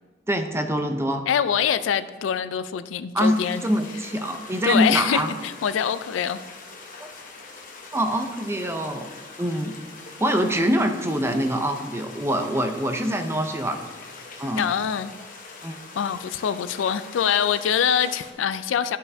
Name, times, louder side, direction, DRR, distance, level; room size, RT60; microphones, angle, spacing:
voice 1, 0.3-1.2 3.1-3.4 3.6-5.3 7.0-7.1 7.9-9.1 9.4-9.7 10.2-13.8 14.4-14.7 15.6-15.7, equal, 15° right, 6 dB, 0.5 m, -24 dB
voice 2, 1.3-3.6 4.6-6.4 14.6-15.1 16.0-19.0, left 8 dB, 75° left, 13 dB, 0.3 m, -24 dB
sound 1, 3.2-18.3, left 3 dB, 45° left, 1.0 m, -43 dB
11.5 x 5.5 x 2.7 m, 1.4 s
head